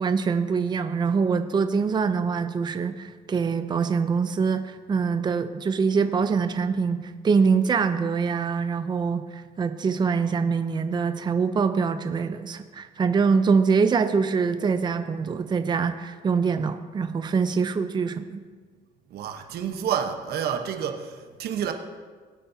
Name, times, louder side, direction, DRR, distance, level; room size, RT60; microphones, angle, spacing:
voice 1, 0.0-18.4, right 5 dB, 25° right, 9 dB, 0.6 m, -24 dB
voice 2, 19.1-21.7, right 8 dB, 70° right, 5 dB, 1.1 m, -29 dB
19.0 x 8.5 x 2.8 m, 1.5 s
cardioid pair, 110°, 17 cm